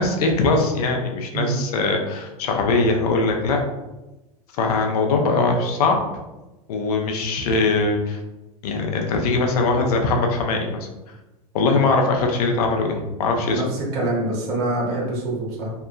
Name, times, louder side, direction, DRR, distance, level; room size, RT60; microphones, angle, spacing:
voice 1, 0.0-3.6 4.6-6.0 6.7-8.2 8.6-10.9 11.5-13.6, left 3 dB, 75° left, 3 dB, 0.6 m, -21 dB
voice 2, 13.5-15.7, right 2 dB, 55° right, -3 dB, 1.1 m, -25 dB
2.8 x 2.1 x 2.5 m, 1.0 s
hypercardioid pair, 105°, 20 cm